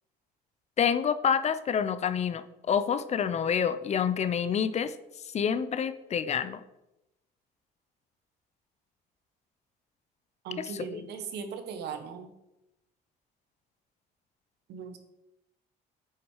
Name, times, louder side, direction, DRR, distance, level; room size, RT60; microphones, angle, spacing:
voice 1, 0.8-4.9 5.3-6.6 10.6-11.1, left 7 dB, 40° left, 13 dB, 0.6 m, -28 dB
voice 2, 10.4-12.3 14.7-15.0, right 6 dB, 80° right, 7 dB, 1.4 m, -38 dB
9.4 x 6.3 x 4.7 m, 0.89 s
cardioid pair, 110°, 17 cm